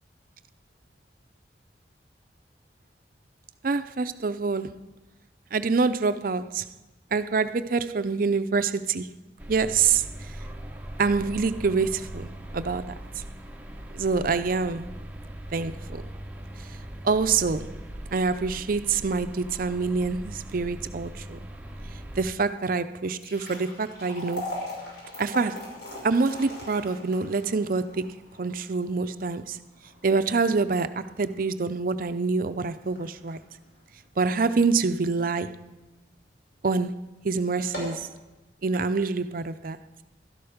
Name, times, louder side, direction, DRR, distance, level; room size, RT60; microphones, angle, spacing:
voice 1, 3.6-4.8 5.5-6.7 7.1-9.2 9.5-10.1 11.0-13.0 13.9-15.0 15.5-16.1 17.0-17.8 18.1-21.4 22.2-24.6 25.2-25.7 26.0-29.6 30.0-33.4 34.2-35.6 36.6-37.0 37.2-38.1 38.6-39.8, right 4 dB, 50° right, 0.5 m, -26 dB
sound 1, 9.4-22.3, right 1 dB, 10° right, 0.8 m, -40 dB
sound 2, 23.0-35.3 35.7-35.8 36.5-36.7 37.0-37.1 37.5-38.1, left 1 dB, 80° left, 5.6 m, -41 dB
12.5 x 11.5 x 5.0 m
head